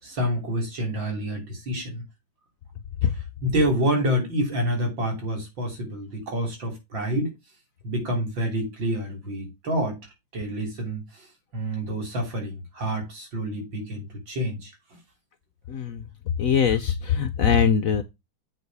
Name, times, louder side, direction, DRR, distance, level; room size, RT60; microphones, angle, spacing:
voice 1, 0.0-2.0 3.0-7.3 7.8-10.0 10.3-11.3 11.5-14.7, equal, 75° right, 4.1 m, -28 dB
voice 2, 15.7-16.0 16.4-18.0, left 7 dB, 60° left, 0.9 m, -22 dB
8.2 x 5.3 x 4.7 m
omnidirectional pair, 2.1 m